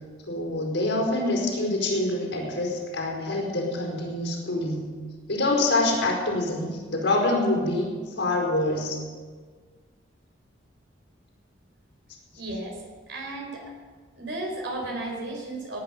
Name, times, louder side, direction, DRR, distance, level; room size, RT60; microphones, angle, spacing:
voice 1, 0.3-4.9 5.3-7.9 8.2-9.0, left 2 dB, 85° left, -1 dB, 4.9 m, -26 dB
voice 2, 12.3-12.8 13.1-13.7 14.2-15.8, right 2 dB, 80° right, 1 dB, 4.3 m, -34 dB
18.0 x 9.4 x 6.8 m, 1.5 s
head